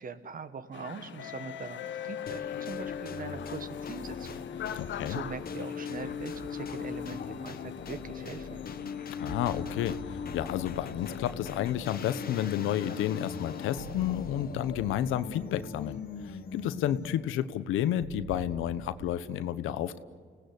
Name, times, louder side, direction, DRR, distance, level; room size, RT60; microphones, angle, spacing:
voice 1, 0.0-8.6, right 5 dB, 45° right, 12 dB, 1.7 m, -42 dB
sound 1, 0.7-13.7, left 9 dB, 70° left, 1.2 m, -44 dB
sound 2, 2.3-17.4, left 6 dB, 50° left, 1.7 m, -39 dB
voice 2, 4.8-5.2 9.2-16.0 16.2-20.0, left 11 dB, 90° left, 13 dB, 1.1 m, -31 dB
sound 3, 6.0-19.2, right 5 dB, 75° right, 1.8 m, -50 dB
29.5 x 18.5 x 8.1 m, 2.1 s
cardioid pair, 90°, 20 cm